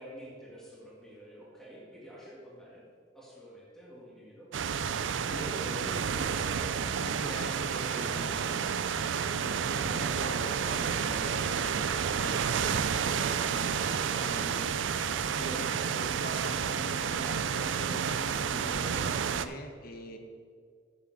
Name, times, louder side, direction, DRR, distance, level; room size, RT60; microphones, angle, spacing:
voice 1, 0.0-2.8 3.1-4.5 5.3-6.1 15.5-15.6, equal, ahead, -6 dB, 1.9 m, -48 dB
sound 1, 4.5-19.5, right 7 dB, 80° right, 0.4 m, -30 dB
voice 2, 5.3-6.3 7.0-8.7 9.1-20.2, equal, 50° left, 5 dB, 1.1 m, -43 dB
7.1 x 6.8 x 7.6 m, 2.1 s
head